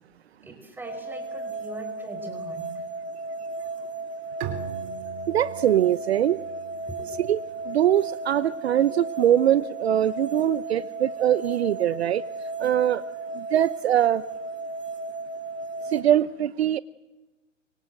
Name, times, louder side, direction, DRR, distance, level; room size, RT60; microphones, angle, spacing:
voice 1, 0.4-2.8 6.9-7.1, right 1 dB, 5° right, 6 dB, 5.2 m, -41 dB
sound 1, 0.8-16.0, right 3 dB, 75° right, 6.4 m, -35 dB
Bowed string instrument, 4.4-7.9, right 9 dB, 35° right, 4.0 m, -40 dB
voice 2, 5.3-6.4 7.2-7.4 7.7-12.2 12.6-13.0 13.3-14.2 15.8-16.8, right 11 dB, 55° right, 17 dB, 0.9 m, -22 dB
30.0 x 25.0 x 7.8 m, 1.1 s
hypercardioid pair, 135°, 38 cm